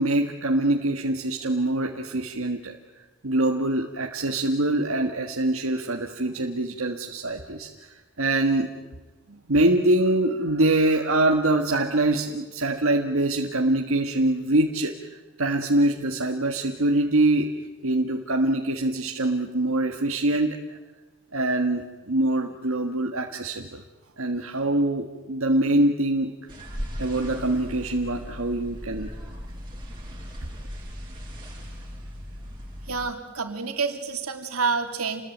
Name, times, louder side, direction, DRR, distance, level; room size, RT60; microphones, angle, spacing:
voice 1, 0.0-2.8 3.2-8.7 9.5-14.9 15.4-17.5 17.8-20.6 21.3-23.8 24.2-26.3 27.0-29.1, right 1 dB, 75° right, 2 dB, 1.6 m, -24 dB
sound 1, 26.5-33.0, equal, 20° right, 6.6 m, -38 dB
voice 2, 32.9-35.2, right 5 dB, 90° right, 6 dB, 3.0 m, -28 dB
28.5 x 21.0 x 9.3 m, 1.2 s
head